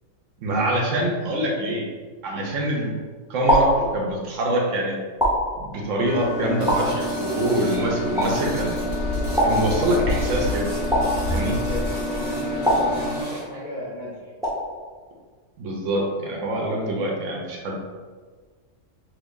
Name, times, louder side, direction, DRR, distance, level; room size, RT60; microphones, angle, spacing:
voice 1, 0.4-1.9 2.2-2.9 3.3-5.0 5.6-8.8 9.4-10.7 11.3-11.6 15.6-17.7, right 1 dB, 70° right, -1 dB, 1.0 m, -25 dB
sound 1, 2.3-2.8 3.5-4.4 5.2-6.1 6.7-7.5 8.2-8.8 9.4-10.3 10.9-11.8 12.6-13.6 14.4-15.0, equal, 5° right, 0.4 m, -25 dB
sound 2, 6.0-13.2, left 1 dB, 85° left, 1.0 m, -28 dB
sound 3, 6.6-13.4, right 1 dB, 50° right, 0.9 m, -36 dB
voice 2, 11.4-14.3 16.7-17.0, left 1 dB, 65° left, -6 dB, 0.4 m, -35 dB
2.8 x 2.5 x 3.6 m, 1.5 s
omnidirectional pair, 1.4 m